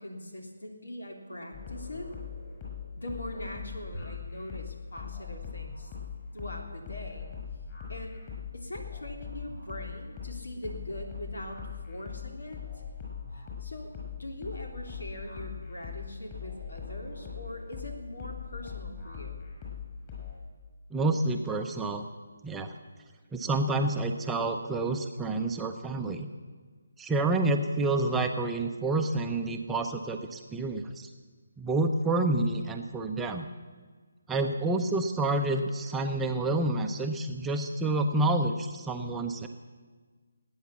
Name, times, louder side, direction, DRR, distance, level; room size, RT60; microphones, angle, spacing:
voice 1, 0.0-2.1 3.0-5.9 6.3-7.3 7.9-8.2 8.5-12.8 13.3-19.4, left 1 dB, 80° left, 3 dB, 3.2 m, -42 dB
sound 1, 1.5-20.3, left 7 dB, 30° left, 6.0 m, -41 dB
voice 2, 20.9-22.1 22.4-22.7 23.3-26.3 27.0-31.1 31.6-33.5 34.3-39.5, right 2 dB, 5° right, 3 dB, 0.7 m, -28 dB
19.0 x 9.5 x 7.1 m, 1.5 s
figure-of-eight pair, 160°, 0 cm